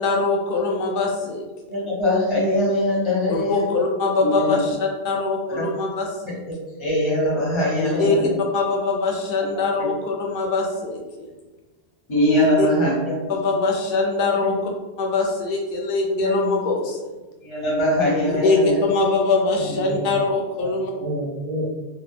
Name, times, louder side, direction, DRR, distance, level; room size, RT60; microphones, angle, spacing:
voice 1, 0.0-1.5 3.3-6.4 7.8-11.3 12.3-12.7 13.3-14.7 15.0-17.0 18.2-20.9, left 3 dB, 65° left, 0 dB, 0.7 m, -23 dB
voice 2, 1.7-3.6 4.2-4.6 5.5-5.6 6.8-8.3 9.8-9.9 12.1-13.2 16.2-16.6 17.4-18.8, left 1 dB, 30° left, -5 dB, 0.8 m, -22 dB
voice 3, 19.6-20.1 20.6-21.6, right 1 dB, 50° right, -2 dB, 0.4 m, -30 dB
2.2 x 2.1 x 3.2 m, 1.2 s
omnidirectional pair, 1.1 m